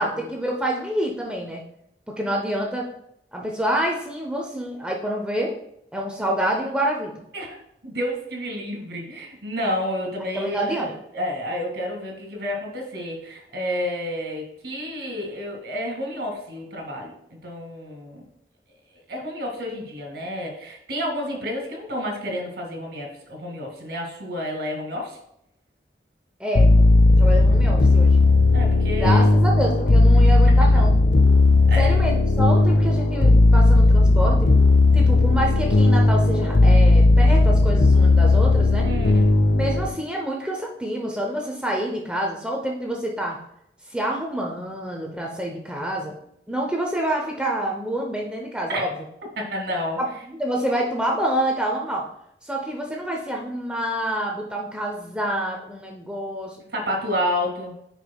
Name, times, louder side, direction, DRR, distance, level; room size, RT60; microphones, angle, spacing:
voice 1, 0.0-1.6 2.2-2.9 3.3-5.6 5.9-7.1 10.3-10.9 26.4-26.7 27.2-28.2 29.0-31.0 31.8-34.5 34.9-38.9 39.5-43.4 43.9-46.1 46.5-48.9 50.0-52.0 52.4-56.6, right 1 dB, 5° right, 0 dB, 0.7 m, -27 dB
voice 2, 7.8-17.1 17.4-18.3 19.1-25.2 28.5-29.2 31.7-31.9 38.8-39.3 48.7-48.9 49.4-50.0 56.7-57.8, equal, 80° right, 1 dB, 2.2 m, -30 dB
sound 1, 26.6-39.9, left 2 dB, 80° left, 0.6 m, -16 dB
9.2 x 5.3 x 2.3 m, 0.75 s
head